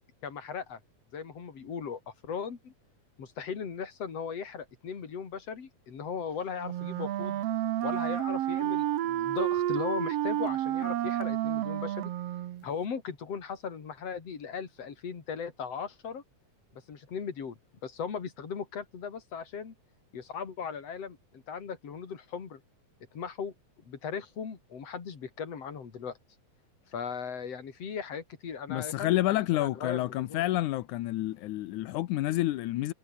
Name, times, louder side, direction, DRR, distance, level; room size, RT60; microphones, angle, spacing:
voice 1, 0.2-0.8 1.1-2.7 3.2-7.4 7.8-12.1 12.6-16.2 16.7-19.7 20.1-22.6 23.1-23.5 23.9-26.2 26.9-29.2 29.5-30.4, left 6 dB, 55° left, 4.1 m, -38 dB
Wind instrument woodwind instrument, 6.6-12.6, right 13 dB, 65° right, 1.9 m, -30 dB
voice 2, 28.7-32.9, left 16 dB, 85° left, 2.3 m, -29 dB
omnidirectional pair, 3.4 m